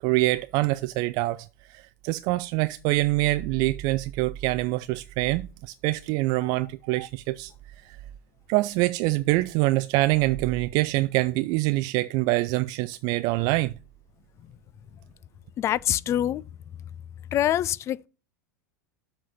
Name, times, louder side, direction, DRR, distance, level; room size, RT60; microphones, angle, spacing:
voice 1, 0.0-7.5 7.8-8.0 8.5-13.7, right 19 dB, 45° right, 0.4 m, -25 dB
voice 2, 15.6-16.4 17.3-18.1, left 11 dB, 30° left, 0.4 m, -25 dB
7.4 x 4.3 x 6.6 m
hypercardioid pair, 90°, 9 cm